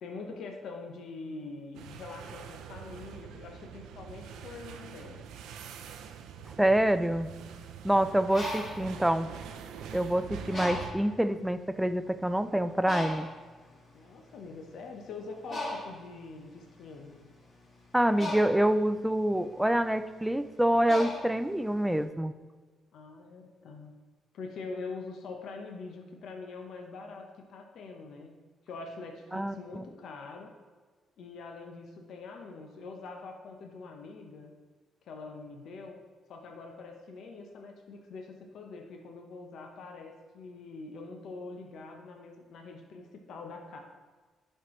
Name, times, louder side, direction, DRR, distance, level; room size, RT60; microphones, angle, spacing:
voice 1, 0.0-5.3 13.9-17.1 22.9-23.9 24.3-28.4 28.7-30.6 31.2-34.5 35.1-36.0 36.3-43.8, left 3 dB, 70° left, 3 dB, 0.8 m, -44 dB
sound 1, 1.7-10.9, right 7 dB, 85° right, 0.5 m, -45 dB
voice 2, 6.6-7.3 7.8-9.3 9.9-13.3 17.9-22.3 29.3-29.8, right 1 dB, 5° right, 11 dB, 0.3 m, -26 dB
Bird, 8.1-10.0 10.5-11.2 11.9-12.0 12.3-22.0, left 1 dB, 40° left, 1.9 m, -39 dB
11.0 x 4.4 x 3.1 m, 1.4 s
cardioid pair, 90°, 0 cm